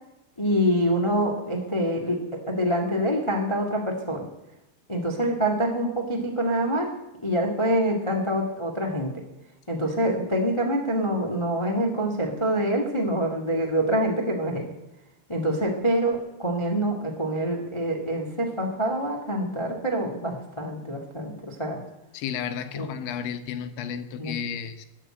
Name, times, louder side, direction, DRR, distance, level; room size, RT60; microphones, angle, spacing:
voice 1, 0.4-4.2 4.9-6.9 7.2-9.1 9.7-14.6 15.3-21.8 22.7-22.9 24.2-24.3, right 1 dB, 30° left, 0.5 m, -26 dB
voice 2, 22.1-24.9, left 8 dB, 85° left, 3.5 m, -32 dB
21.5 x 7.6 x 9.0 m
omnidirectional pair, 5.3 m